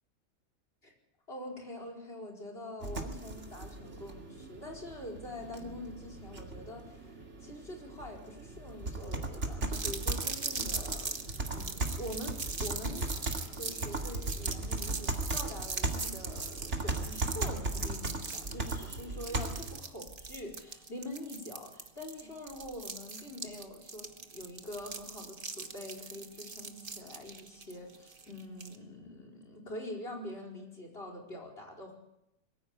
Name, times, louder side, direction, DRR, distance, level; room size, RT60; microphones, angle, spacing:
voice 1, 1.3-11.2 11.5-13.1 13.5-31.9, left 1 dB, 45° left, 2 dB, 5.0 m, -45 dB
sound 1, 2.8-19.8, right 2 dB, 60° right, 2.7 m, -37 dB
sound 2, 9.7-28.8, right 4 dB, 40° right, 1.5 m, -41 dB
23.0 x 15.5 x 8.4 m, 0.85 s
omnidirectional pair, 1.4 m